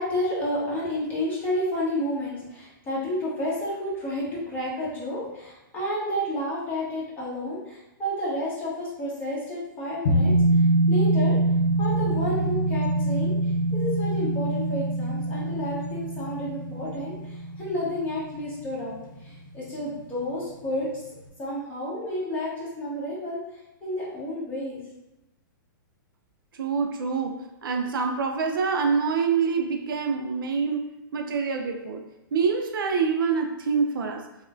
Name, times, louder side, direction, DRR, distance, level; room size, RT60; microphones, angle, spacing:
voice 1, 0.0-11.4 11.8-21.0 21.4-23.4 23.8-24.8, left 1 dB, 15° left, -7 dB, 1.0 m, -31 dB
sound 1, 10.1-19.2 19.5-19.6, right 2 dB, 70° left, 0.7 m, -24 dB
voice 2, 26.5-32.0 32.3-34.3, right 5 dB, 80° right, 4 dB, 0.4 m, -26 dB
3.0 x 2.1 x 2.5 m, 0.92 s
hypercardioid pair, 140°, 11 cm